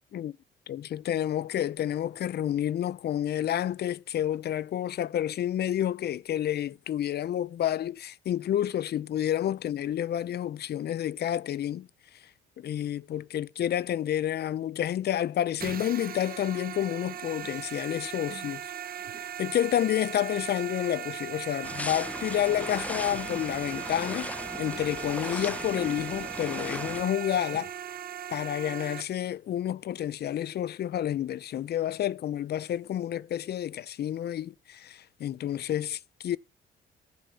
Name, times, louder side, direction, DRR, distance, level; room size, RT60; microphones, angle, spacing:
voice 1, 0.7-11.9 12.6-18.7 19.4-27.7 28.3-36.4, left 11 dB, 55° left, 0.5 m, -30 dB
sound 1, 15.6-29.0, right 9 dB, 50° right, 1.0 m, -38 dB
sound 2, 21.6-27.0, left 1 dB, 5° left, 0.5 m, -38 dB
10.5 x 5.3 x 8.2 m
cardioid pair, 90°, 20 cm